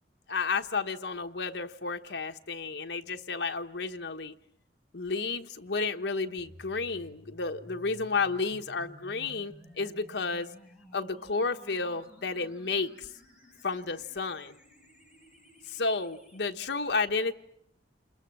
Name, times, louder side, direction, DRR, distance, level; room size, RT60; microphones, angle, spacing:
voice 1, 0.3-4.3 4.9-10.5 10.9-13.1 13.6-14.5 15.7-17.3, left 4 dB, 70° left, 1.1 m, -32 dB
sound 1, 6.4-16.4, equal, 5° right, 5.2 m, -54 dB
28.5 x 21.5 x 7.6 m
head